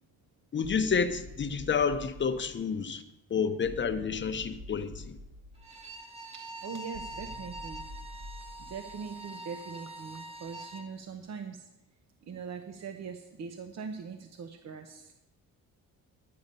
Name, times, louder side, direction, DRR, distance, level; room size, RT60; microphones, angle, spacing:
voice 1, 0.5-3.0 3.3-5.2, left 6 dB, 35° left, 0.7 m, -29 dB
sound 1, 0.6-2.9 3.6-5.9 6.9-9.2, left 1 dB, 35° right, 1.5 m, -47 dB
Bowed string instrument, 5.6-10.9, right 1 dB, 20° right, 1.3 m, -44 dB
voice 2, 6.3-7.8 8.6-11.7 12.2-15.1, right 6 dB, 50° right, 0.9 m, -42 dB
12.0 x 8.6 x 5.4 m
cardioid pair, 120°, 33 cm